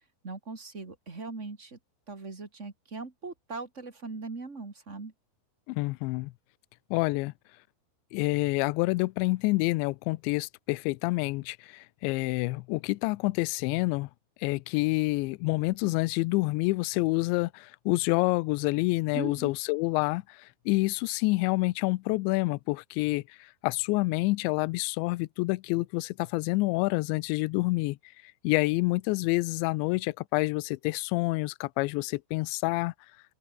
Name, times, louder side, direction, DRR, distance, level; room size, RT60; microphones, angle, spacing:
voice 1, 0.2-1.8 2.1-5.1 19.1-19.5, right 3 dB, 35° right, 1.2 m, -39 dB
voice 2, 5.7-6.3 6.9-7.3 8.1-14.1 14.4-28.0 28.4-32.9, left 23 dB, 85° left, 2.6 m, -28 dB
open air
omnidirectional pair, 5.9 m